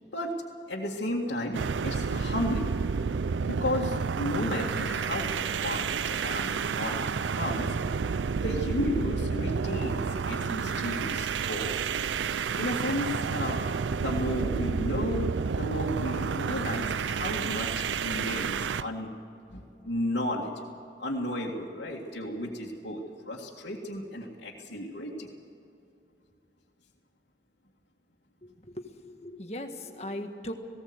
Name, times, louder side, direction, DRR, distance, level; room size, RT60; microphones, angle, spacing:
voice 1, 0.1-2.7 3.4-7.0 7.3-7.8 8.4-11.7 12.6-13.7 13.9-19.1 19.5-20.6 21.0-25.3, left 1 dB, 75° left, -5 dB, 2.1 m, -33 dB
sound 1, 1.5-18.9, right 5 dB, 85° right, 0.5 m, -30 dB
voice 2, 28.4-30.5, left 1 dB, 35° left, 5 dB, 1.6 m, -39 dB
19.5 x 17.0 x 8.0 m, 2.6 s
head